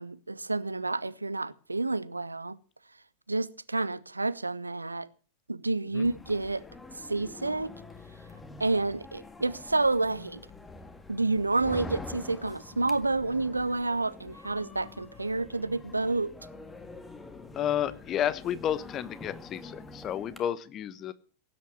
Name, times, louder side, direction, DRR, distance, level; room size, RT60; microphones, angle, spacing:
voice 1, 0.0-2.6 3.3-5.1 5.5-6.6 7.1-7.7 8.6-10.4 11.1-16.3, right 3 dB, 80° right, 0.7 m, -29 dB
sound 1, 6.0-20.4, left 2 dB, 10° left, 1.9 m, -46 dB
voice 2, 17.5-21.1, left 10 dB, 30° left, 1.1 m, -31 dB
17.5 x 9.5 x 7.2 m
figure-of-eight pair, 90°, 0 cm